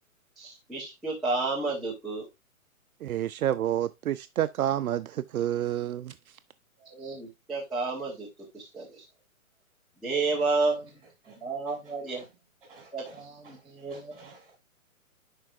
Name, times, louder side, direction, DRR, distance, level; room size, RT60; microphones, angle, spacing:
voice 1, 0.4-2.3 6.8-8.3 8.5-9.0 10.0-10.9 11.4-12.2 12.9-14.2, right 3 dB, ahead, 1.1 m, -31 dB
voice 2, 3.0-6.1, right 11 dB, 80° right, 0.6 m, -29 dB
voice 3, 12.6-13.6 13.9-14.5, right 3 dB, 40° right, 4.2 m, -52 dB
11.0 x 4.5 x 2.5 m
hypercardioid pair, 165°, 42 cm